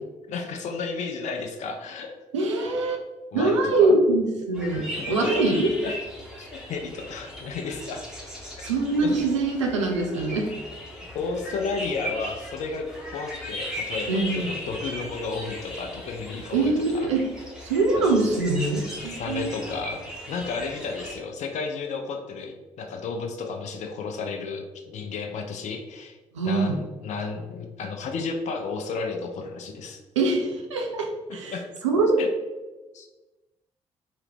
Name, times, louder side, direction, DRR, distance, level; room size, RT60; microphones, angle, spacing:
voice 1, 0.3-2.1 3.3-3.9 5.0-5.4 5.8-5.9 6.4-8.0 8.6-8.7 9.0-9.1 11.1-17.1 17.9-18.2 19.0-26.2 26.4-30.0 31.5-31.7 32.2-32.3 32.9-33.1, left 4 dB, 50° left, 4 dB, 0.5 m, -33 dB
voice 2, 2.3-3.0 3.3-5.7 8.6-10.5 14.1-14.5 16.5-17.2 17.6-19.6 26.3-26.8 30.2-31.6 31.8-32.3, right 2 dB, 80° right, 3 dB, 0.4 m, -23 dB
sound 1, 4.5-21.2, equal, 5° right, 1.1 m, -38 dB
3.1 x 2.8 x 3.3 m, 1.2 s
figure-of-eight pair, 40°, 15 cm